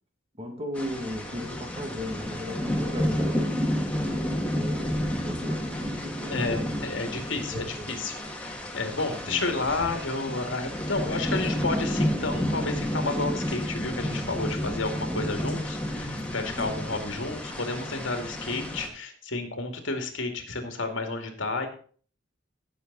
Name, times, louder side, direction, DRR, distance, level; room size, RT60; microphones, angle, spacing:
voice 1, 0.4-4.1 4.5-6.6 7.2-8.0 9.3-9.5 15.1-15.3, left 1 dB, 30° right, 5 dB, 2.0 m, -37 dB
sound 1, 0.7-18.9, equal, 5° left, 2.0 m, -31 dB
voice 2, 6.3-21.7, left 3 dB, 85° left, 5 dB, 2.3 m, -31 dB
17.0 x 7.0 x 4.1 m, 0.43 s
head